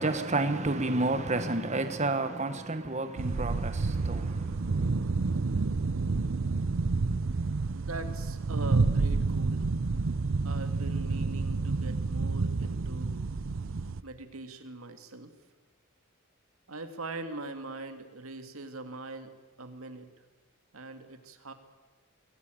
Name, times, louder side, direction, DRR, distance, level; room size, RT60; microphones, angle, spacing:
voice 1, 0.0-5.0, right 2 dB, 35° right, 1.3 m, -30 dB
sound 1, 3.2-14.0, right 3 dB, 65° right, 0.7 m, -29 dB
voice 2, 7.8-9.6 10.4-13.3 14.0-15.3 16.7-19.3 19.6-20.1 20.7-21.5, right 2 dB, 85° right, 2.1 m, -41 dB
23.5 x 17.5 x 9.1 m
head